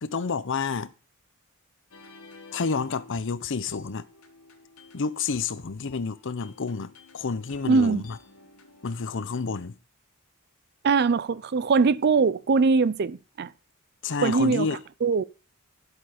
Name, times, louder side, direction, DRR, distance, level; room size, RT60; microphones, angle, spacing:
voice 1, 0.0-0.9 2.5-4.1 4.9-8.2 8.8-9.8 14.0-14.8, left 4 dB, 60° left, 0.7 m, -29 dB
sound 1, 1.9-9.1, left 3 dB, 85° left, 1.7 m, -51 dB
voice 2, 7.6-8.0 10.8-13.5 14.2-14.7 15.0-15.2, right 4 dB, 50° right, 0.5 m, -22 dB
11.0 x 7.8 x 4.9 m
head